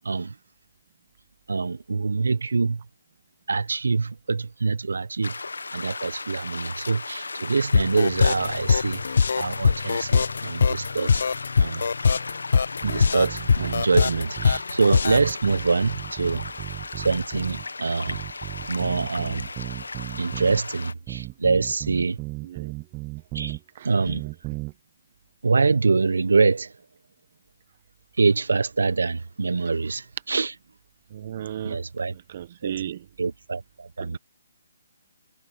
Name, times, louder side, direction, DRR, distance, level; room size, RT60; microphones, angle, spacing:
voice 1, 1.5-2.8 3.5-5.3 5.7-9.0 9.3-11.1 11.6-11.9 12.8-16.5 17.0-18.2 18.7-19.4 20.2-22.2 23.3-23.6 23.8-24.2 25.4-26.7 28.2-30.5 31.6-32.1 32.6-32.7 33.2-34.2, right 4 dB, 75° right, 1.2 m, -25 dB
sound 1, 5.2-20.9, left 3 dB, 80° left, 1.4 m, -36 dB
sound 2, 7.7-15.3, left 5 dB, 65° left, 0.6 m, -21 dB
sound 3, 12.8-14.6 15.1-17.7 18.1-20.6 21.1-23.6 24.1-24.7, right 24 dB, 20° right, 1.2 m, -35 dB
voice 2, 22.4-22.7 23.7-23.9 31.1-31.8 32.3-33.0 34.0-34.2, right 11 dB, 40° right, 1.5 m, -34 dB
figure-of-eight pair, 145°, 0 cm